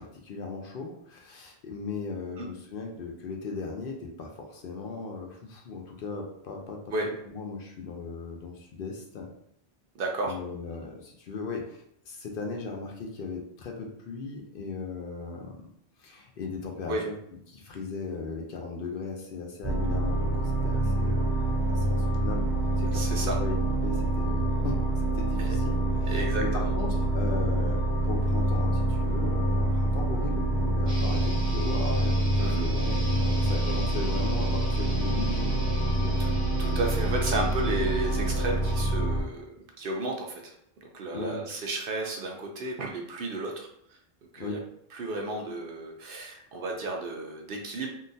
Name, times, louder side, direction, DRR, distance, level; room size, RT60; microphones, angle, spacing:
voice 1, 0.0-6.8 7.3-9.3 10.2-15.6 16.0-17.1 17.5-22.5 22.8-23.0 23.4-23.6 23.8-35.6 36.0-36.2 41.1-41.4 44.4-44.7, left 4 dB, 60° left, 1 dB, 0.7 m, -37 dB
voice 2, 10.0-10.4 16.9-17.0 22.9-23.4 25.4-25.5 26.1-26.7 32.4-32.7 36.2-36.3 36.6-40.5 40.8-44.0 44.3-44.6 44.9-47.9, right 2 dB, 60° right, 1 dB, 0.7 m, -33 dB
sound 1, 19.6-39.2, right 1 dB, 15° right, 1.5 m, -26 dB
sound 2, 30.9-38.9, left 1 dB, 35° right, 1.3 m, -39 dB
3.7 x 2.4 x 2.6 m, 0.71 s
omnidirectional pair, 1.1 m